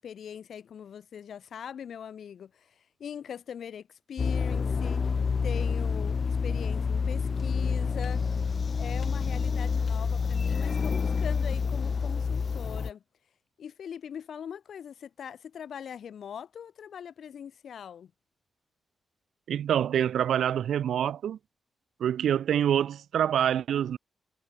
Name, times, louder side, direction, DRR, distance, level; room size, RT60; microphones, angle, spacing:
voice 1, 0.0-5.2 5.4-8.3 8.7-13.0 13.6-18.1, left 8 dB, 65° left, 4.2 m, -41 dB
sound 1, 4.2-12.9, left 5 dB, 40° left, 0.6 m, -28 dB
voice 2, 19.5-21.4 22.0-24.0, right 9 dB, 90° right, 1.1 m, -26 dB
wide cardioid pair, 165°, 0 cm